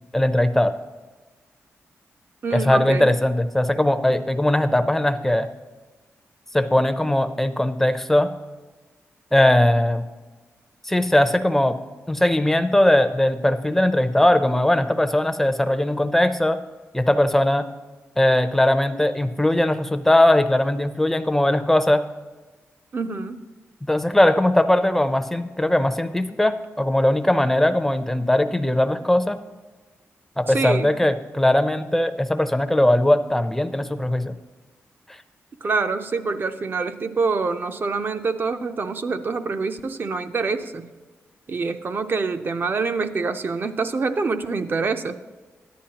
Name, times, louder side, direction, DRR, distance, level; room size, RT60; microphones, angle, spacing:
voice 1, 0.1-0.7 2.5-5.5 6.5-8.3 9.3-10.0 10.8-11.8 12.1-16.6 16.9-17.7 18.2-22.0 23.8-29.4 30.4-34.3, left 1 dB, 5° left, 9 dB, 0.5 m, -19 dB
voice 2, 2.4-3.1 22.9-23.5 30.5-30.9 35.6-40.9 41.5-45.1, right 4 dB, 45° right, 9 dB, 0.5 m, -26 dB
13.5 x 10.0 x 2.9 m, 1.3 s
wide cardioid pair, 105°, 5 cm